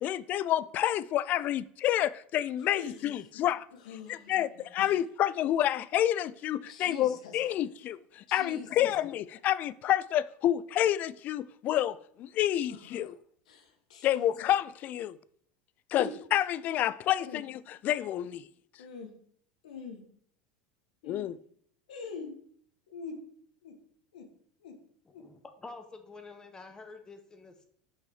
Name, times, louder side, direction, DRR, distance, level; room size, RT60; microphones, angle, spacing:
voice 1, 0.0-3.7 4.1-13.2 14.0-15.2 15.9-18.5 21.0-21.4, left 12 dB, 45° left, 0.4 m, -29 dB
voice 2, 2.7-3.1 3.8-4.5 4.8-4.9 6.7-7.4 8.3-8.9 12.7-12.9 13.5-14.3 16.0-16.1 17.2-17.4 18.8-19.1 19.6-20.0 21.0-21.3 21.9-22.4 22.9-23.2 23.6-23.7 24.1-24.3 24.6-24.7 25.1-25.2, left 6 dB, 80° left, 1.5 m, -43 dB
voice 3, 25.2-27.6, left 3 dB, 20° left, 1.1 m, -48 dB
6.3 x 5.6 x 4.8 m
hypercardioid pair, 90°, 4 cm